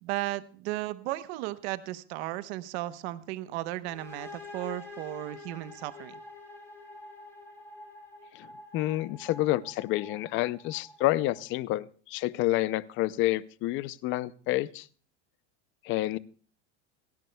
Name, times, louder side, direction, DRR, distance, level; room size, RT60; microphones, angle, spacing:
voice 1, 0.0-6.2, right 16 dB, 65° right, 13 dB, 1.0 m, -35 dB
sound 1, 3.8-11.5, left 2 dB, 5° left, 3.0 m, -47 dB
voice 2, 8.3-14.9 15.8-16.2, left 16 dB, 35° left, 18 dB, 0.5 m, -29 dB
28.0 x 10.5 x 2.2 m, 0.41 s
supercardioid pair, 155°, 35 cm